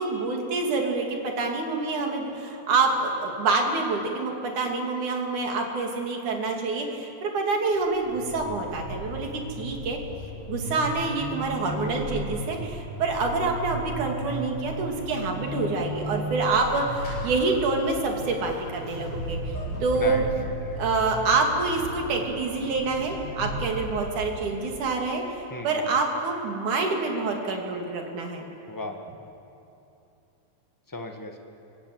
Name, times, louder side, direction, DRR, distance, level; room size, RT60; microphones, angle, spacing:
voice 1, 0.0-10.0 10.5-19.6 19.8-20.2 20.8-28.4, right 3 dB, 80° right, 2 dB, 4.2 m, -27 dB
Vehicle / Accelerating revving vroom / Squeak, 7.8-25.0, equal, 60° left, 9.2 m, -35 dB
voice 2, 19.9-20.8 25.5-26.0 28.7-29.0 30.9-31.4, left 2 dB, 10° left, 4 dB, 1.0 m, -36 dB
28.5 x 24.5 x 8.0 m, 2.8 s
omnidirectional pair, 3.4 m